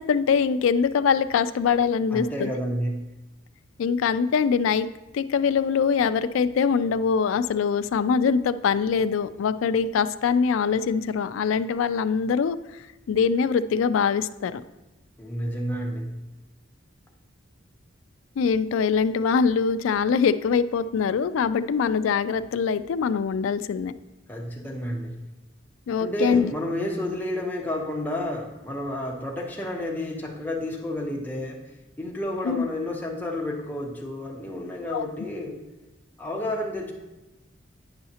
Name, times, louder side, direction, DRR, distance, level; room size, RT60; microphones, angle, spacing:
voice 1, 0.0-2.5 3.8-4.9 5.1-12.6 13.1-14.6 18.4-23.9 25.9-26.5 32.5-32.6 34.9-35.1, left 6 dB, 80° left, 13 dB, 0.3 m, -23 dB
voice 2, 2.1-3.1 15.2-16.2 24.3-25.2 26.0-31.6 32.0-35.6 36.2-36.9, left 1 dB, 10° left, -1 dB, 0.8 m, -30 dB
9.6 x 5.6 x 2.8 m, 1.0 s
head